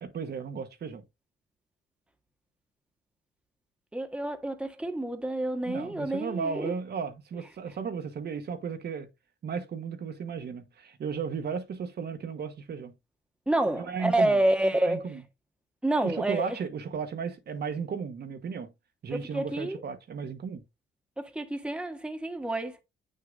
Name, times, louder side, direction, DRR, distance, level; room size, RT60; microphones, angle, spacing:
voice 1, 0.0-1.0 5.7-9.1 9.4-12.9 13.8-14.4 14.8-15.2 16.0-18.7 19.0-20.6, right 6 dB, 55° right, 1.2 m, -35 dB
voice 2, 3.9-6.7 13.5-15.2 15.8-16.6 19.1-19.8 21.2-22.8, right 1 dB, 5° right, 1.3 m, -28 dB
8.6 x 6.5 x 2.5 m
cardioid pair, 90°, 20 cm